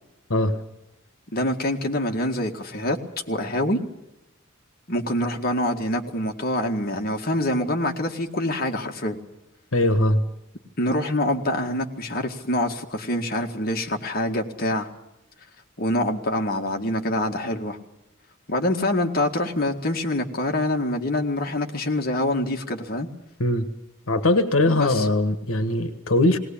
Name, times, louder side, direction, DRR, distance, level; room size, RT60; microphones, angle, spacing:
voice 1, 1.3-3.0 3.3-3.8 4.9-9.2 10.8-14.9 15.8-17.8 18.5-23.1 24.7-25.1, left 1 dB, 45° left, 3 dB, 2.0 m, -25 dB
voice 2, 9.7-10.2 23.4-23.7 24.1-26.4, left 1 dB, 85° left, 9 dB, 1.4 m, -21 dB
19.0 x 19.0 x 8.7 m, 0.90 s
head